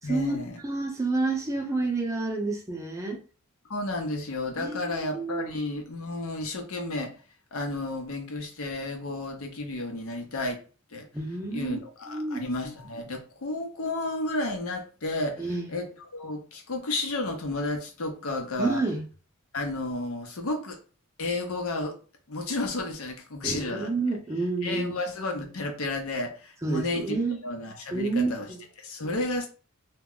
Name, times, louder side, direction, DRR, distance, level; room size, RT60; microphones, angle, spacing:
voice 1, 0.0-0.6 3.7-7.1 7.5-10.6 10.9-11.1 11.5-18.8 19.5-20.8 21.2-22.0 22.3-23.9 24.6-27.2 27.4-28.5 28.8-29.5, left 2 dB, 80° left, 0.7 m, -32 dB
voice 2, 0.6-3.2 4.6-5.5 11.1-11.8 12.1-12.4 15.4-15.6 18.6-19.0 23.4-24.9 26.6-27.4 27.9-28.6, right 3 dB, 15° right, 0.6 m, -29 dB
2.2 x 2.0 x 3.6 m
head